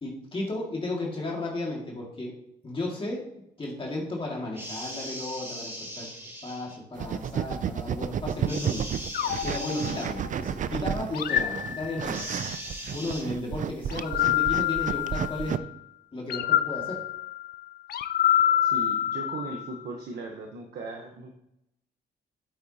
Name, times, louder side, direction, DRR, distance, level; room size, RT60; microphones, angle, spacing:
voice 1, 0.0-2.4 2.6-3.3 3.6-6.1 6.4-8.9 9.4-12.3 12.9-15.7 16.1-17.1, left 2 dB, 30° left, -3 dB, 2.2 m, -34 dB
sound 1, 4.5-6.8 8.5-10.1 12.1-13.2, equal, 15° right, 1.9 m, -39 dB
sound 2, 6.9-15.6, right 8 dB, 45° right, 0.4 m, -32 dB
sound 3, 9.1-10.5 11.1-12.4 13.9-15.6 16.3-19.8, left 11 dB, 65° left, 0.5 m, -27 dB
voice 2, 18.6-21.3, right 3 dB, 75° right, 2 dB, 1.2 m, -38 dB
8.5 x 8.1 x 2.9 m, 0.80 s
cardioid pair, 90°, 17 cm